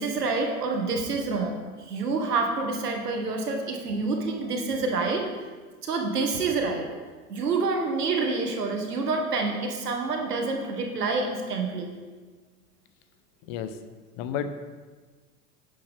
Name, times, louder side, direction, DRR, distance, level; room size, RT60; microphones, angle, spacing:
voice 1, 0.0-5.2 5.8-6.9 7.3-11.9, right 3 dB, 75° right, 2 dB, 1.9 m, -27 dB
voice 2, 14.2-14.5, left 8 dB, 40° left, 10 dB, 1.1 m, -31 dB
12.0 x 8.9 x 3.7 m, 1.4 s
figure-of-eight pair, 90°, 47 cm